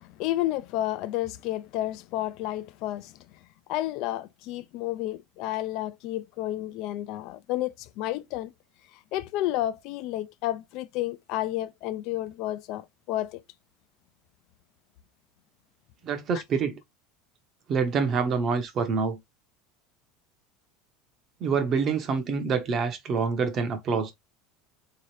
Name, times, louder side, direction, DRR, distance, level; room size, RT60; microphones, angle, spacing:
voice 1, 0.0-3.4 3.7-8.5 8.9-13.4 16.3-16.4, left 14 dB, 55° left, 0.3 m, -31 dB
voice 2, 16.0-16.8 17.7-19.2 21.4-24.1, right 5 dB, 35° right, 0.7 m, -26 dB
3.6 x 2.8 x 3.0 m
supercardioid pair, 155°, 0 cm